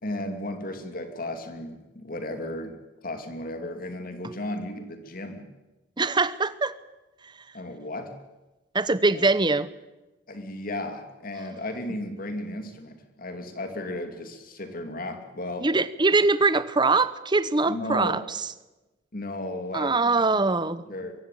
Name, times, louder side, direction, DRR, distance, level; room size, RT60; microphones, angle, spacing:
voice 1, 0.0-2.8 3.0-5.5 7.5-8.1 9.1-9.2 10.3-15.7 17.6-18.2 19.1-21.2, left 1 dB, 45° left, 6 dB, 2.8 m, -35 dB
voice 2, 6.0-6.7 8.7-9.7 15.6-18.5 19.7-20.8, right 3 dB, 25° right, 15 dB, 0.9 m, -23 dB
23.5 x 15.5 x 9.3 m, 1.1 s
head